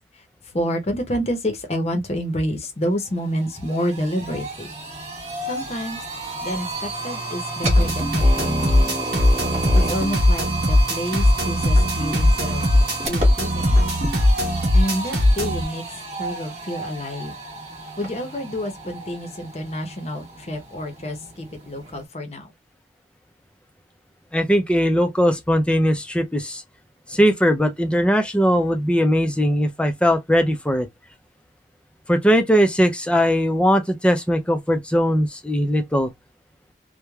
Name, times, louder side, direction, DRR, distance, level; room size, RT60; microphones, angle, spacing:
voice 1, 0.5-4.7 5.5-6.0 6.4-8.9 9.7-12.7 13.0-13.8 14.7-15.8 16.2-17.3 18.0-22.5, equal, 35° left, 0.7 m, -28 dB
sound 1, 2.6-2.7 3.0-22.1, right 2 dB, 35° right, 0.9 m, -31 dB
sound 2, 7.6-15.6, left 1 dB, 55° right, 1.2 m, -19 dB
voice 2, 24.3-26.6 27.1-30.9 32.1-36.1, equal, 5° left, 0.4 m, -19 dB
3.1 x 2.1 x 2.2 m
head